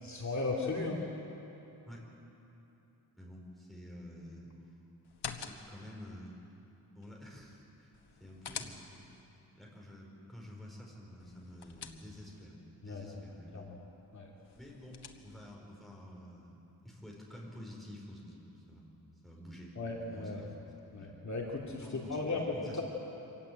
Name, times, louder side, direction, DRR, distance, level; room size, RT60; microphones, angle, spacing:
voice 1, 0.0-1.0 12.8-13.2 13.5-13.6 14.1-14.3 19.8-20.4 20.9-22.8, left 3 dB, 45° left, -2 dB, 2.5 m, -36 dB
voice 2, 3.1-4.5 5.4-6.4 6.9-7.9 8.2-8.8 9.5-13.6 14.5-18.9 19.2-21.2 21.8-22.8, left 1 dB, ahead, -2 dB, 4.7 m, -50 dB
sound 1, 5.0-5.9 7.9-9.2 11.2-12.5 14.4-15.6, left 7 dB, 85° left, 1.4 m, -46 dB
25.5 x 15.5 x 9.4 m, 3.0 s
wide cardioid pair, 140°, 38 cm